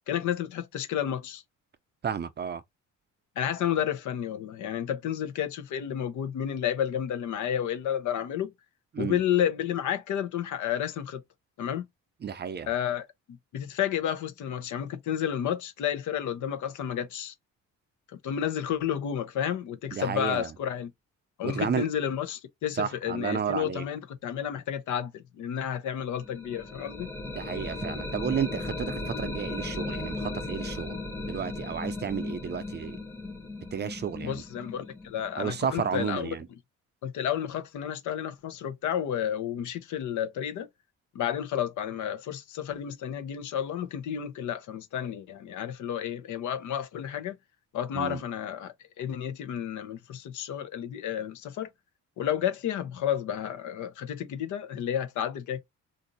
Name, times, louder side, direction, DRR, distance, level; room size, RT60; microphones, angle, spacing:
voice 1, 0.1-1.4 3.4-8.5 9.0-11.2 11.6-11.8 12.7-13.1 13.5-17.3 18.2-20.9 21.4-27.1 34.2-36.3 37.0-40.7 41.1-47.3 47.7-51.7 52.2-55.6, left 9 dB, 75° left, 0.8 m, -31 dB
voice 2, 2.0-2.6 8.9-9.2 12.2-12.7 19.9-20.5 21.4-21.8 22.7-23.8 27.3-33.0 33.7-34.4 35.4-36.5 47.9-48.2, right 7 dB, 35° right, 0.5 m, -32 dB
sound 1, 26.1-35.9, left 2 dB, 5° left, 0.9 m, -37 dB
3.9 x 2.6 x 2.6 m
cardioid pair, 90°, 30 cm